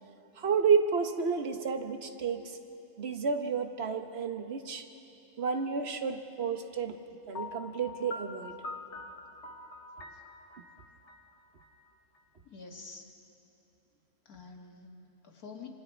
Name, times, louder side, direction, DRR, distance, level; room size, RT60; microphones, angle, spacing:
voice 1, 0.4-2.4 3.0-4.8 5.4-7.0 7.3-8.5, right 5 dB, 50° right, 7 dB, 1.3 m, -30 dB
Piano, 7.3-12.2, left 3 dB, 55° left, 1.4 m, -45 dB
voice 2, 12.4-13.1 14.3-15.7, left 4 dB, 90° left, 1 dB, 2.5 m, -48 dB
27.0 x 26.5 x 4.6 m, 2.8 s
omnidirectional pair, 1.5 m